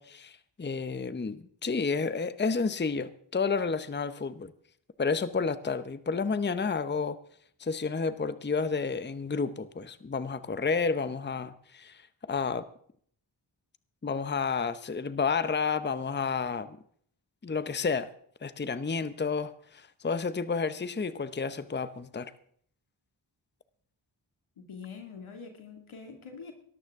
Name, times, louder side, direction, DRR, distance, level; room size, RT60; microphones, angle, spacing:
voice 1, 0.0-4.5 5.0-7.2 7.6-12.7 14.0-16.8 17.4-18.1 18.4-22.3, left 5 dB, 25° left, 14 dB, 0.8 m, -31 dB
voice 2, 24.6-26.5, left 5 dB, 90° left, 3 dB, 2.4 m, -44 dB
18.5 x 13.0 x 3.6 m, 0.62 s
cardioid pair, 40°, 48 cm